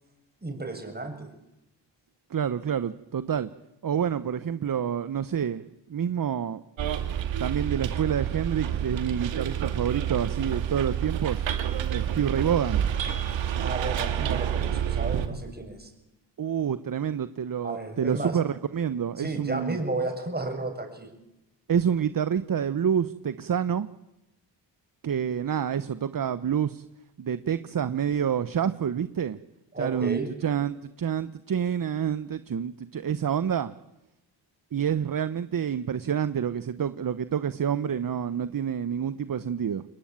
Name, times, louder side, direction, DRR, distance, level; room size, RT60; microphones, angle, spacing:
voice 1, 0.4-1.3 13.6-15.9 17.6-18.4 19.2-21.1 29.7-30.3, right 2 dB, 20° right, 5 dB, 7.2 m, -33 dB
voice 2, 2.3-3.5 3.8-5.6 5.9-6.6 7.4-11.5 11.9-12.9 16.4-19.8 21.7-23.9 25.0-26.8 27.2-29.4 29.8-33.7 34.7-39.8, right 8 dB, 50° right, 13 dB, 1.1 m, -28 dB
Bus, 6.8-15.3, right 9 dB, 85° right, 2.4 m, -28 dB
29.0 x 21.0 x 8.9 m, 0.90 s
cardioid pair, 60°, 44 cm